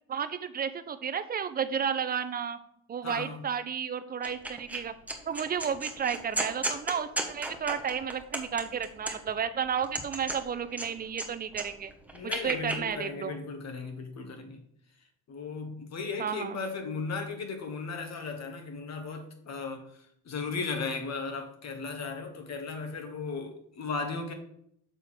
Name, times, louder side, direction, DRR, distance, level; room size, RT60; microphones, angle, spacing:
voice 1, 0.1-2.6 2.9-4.9 5.3-11.9 12.2-13.4 16.2-16.6, right 7 dB, 20° right, 11 dB, 0.6 m, -32 dB
voice 2, 3.0-3.4 12.1-14.6 15.3-24.3, left 4 dB, 40° left, 6 dB, 1.5 m, -36 dB
sound 1, 4.2-4.8 5.1-9.4 9.8-11.3 11.5-12.8, right 1 dB, 5° right, 1.2 m, -34 dB
6.8 x 3.6 x 6.1 m, 0.70 s
supercardioid pair, 95°, 42 cm